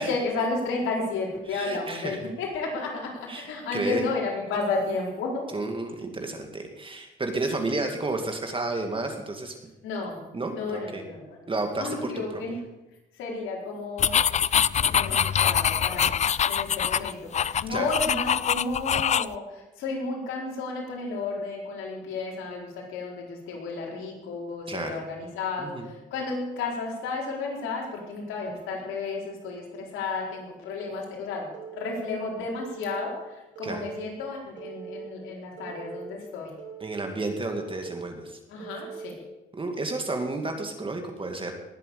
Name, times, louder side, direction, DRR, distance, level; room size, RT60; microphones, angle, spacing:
voice 1, 0.0-5.5 9.8-10.2 10.5-11.5 11.8-12.6 13.2-14.1 14.9-16.2 16.5-25.7 26.1-31.5 31.7-36.5 38.5-39.2, left 3 dB, 90° left, -1 dB, 4.3 m, -32 dB
voice 2, 1.5-2.2 3.3-4.1 5.5-9.6 10.3-11.0 11.5-12.6 17.7-17.9 24.7-25.1 25.6-25.9 33.6-33.8 36.8-38.4 39.5-41.5, right 2 dB, 25° right, 4 dB, 2.3 m, -32 dB
sound 1, 14.0-19.3, left 8 dB, 35° left, 0.4 m, -24 dB
Telephone, 31.5-32.1 32.5-33.1 33.6-34.1 34.6-35.1 35.6-36.1 36.6-37.1 37.6-38.1 38.6-39.1, right 7 dB, 70° right, 4.0 m, -41 dB
19.5 x 7.6 x 6.9 m, 1.0 s
cardioid pair, 90°, 20 cm